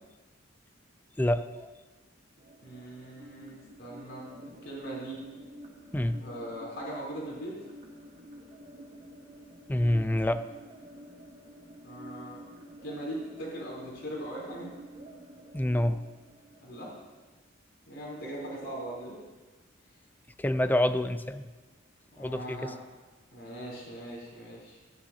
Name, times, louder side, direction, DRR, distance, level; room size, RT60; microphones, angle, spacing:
voice 1, 1.2-1.7 5.9-6.2 9.7-10.4 15.5-16.0 20.4-21.4 22.2-22.7, left 1 dB, 10° left, 11 dB, 0.4 m, -27 dB
sound 1, 2.4-17.3, right 1 dB, 45° right, 1.5 m, -50 dB
voice 2, 2.6-4.3 4.6-5.2 6.2-7.6 11.8-12.4 12.8-14.7 16.6-16.9 17.9-19.2 22.1-22.7 23.3-24.8, right 1 dB, 85° left, -5 dB, 3.6 m, -40 dB
16.0 x 9.9 x 2.8 m, 1.3 s
head